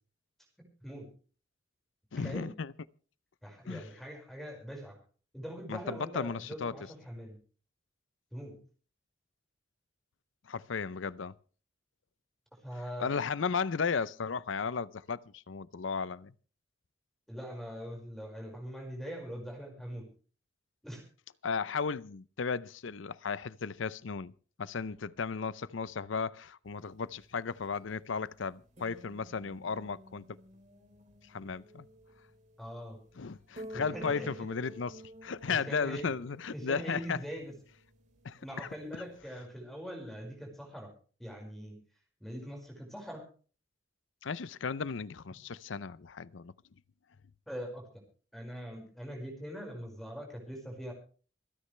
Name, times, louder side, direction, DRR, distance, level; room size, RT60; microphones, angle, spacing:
voice 1, 0.6-1.1 2.1-2.5 3.4-5.0 5.3-7.4 8.3-8.6 12.6-13.1 17.3-20.0 20.8-21.0 32.6-33.0 33.7-34.5 35.5-36.1 36.5-37.5 38.4-40.9 41.2-41.8 42.2-43.2 47.5-47.8 48.3-50.9, equal, ahead, 5.3 m, -42 dB
voice 2, 2.1-2.7 3.7-3.8 5.7-6.7 10.5-11.3 13.0-16.3 21.4-24.3 24.6-30.2 31.3-31.9 33.2-37.2 38.2-38.7 44.2-46.5, left 5 dB, 85° left, 0.6 m, -35 dB
sound 1, 26.7-39.2, equal, 40° right, 3.0 m, -52 dB
27.0 x 9.8 x 3.3 m
head